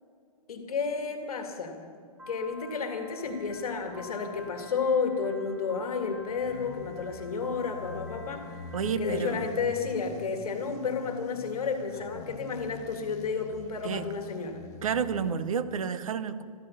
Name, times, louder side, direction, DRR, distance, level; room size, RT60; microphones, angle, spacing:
voice 1, 0.5-1.8 2.3-8.5 9.0-14.6, left 5 dB, 70° left, 5 dB, 2.0 m, -31 dB
Piano, 2.2-9.2, left 2 dB, 5° right, 0.6 m, -49 dB
sound 1, 3.2-4.9 5.5-15.4, left 5 dB, 25° left, 0.8 m, -45 dB
voice 2, 8.7-9.5 13.8-14.1 14.8-16.4, right 7 dB, 60° right, 12 dB, 0.9 m, -30 dB
14.0 x 13.5 x 6.4 m, 2.3 s
hypercardioid pair, 175°, 20 cm